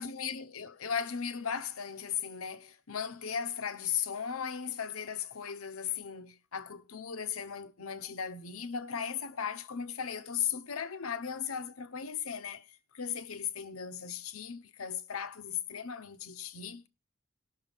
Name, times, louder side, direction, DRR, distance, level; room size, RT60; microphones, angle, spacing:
voice 1, 0.0-16.9, left 7 dB, 90° left, 0.9 m, -37 dB
18.5 x 6.3 x 3.5 m
head